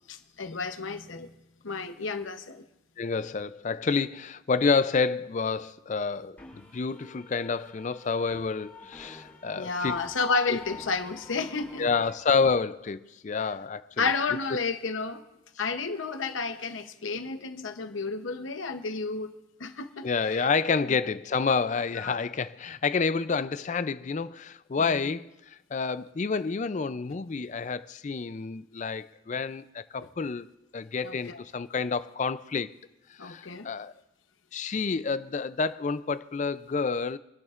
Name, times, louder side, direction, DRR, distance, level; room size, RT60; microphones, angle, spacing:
voice 1, 0.1-1.3 1.6-2.6 9.6-11.9 14.0-15.2 15.6-19.3 19.6-20.5 20.9-21.0 22.0-22.1 24.9-25.0 31.0-31.4 33.2-33.7, left 4 dB, 75° left, 0.8 m, -31 dB
voice 2, 3.0-10.0 10.5-10.6 11.8-14.1 20.0-32.7 33.2-33.9 34.5-37.2, left 5 dB, 40° left, 0.4 m, -29 dB
sound 1, 6.4-12.1, left 4 dB, 10° left, 5.7 m, -47 dB
27.5 x 10.5 x 2.5 m
head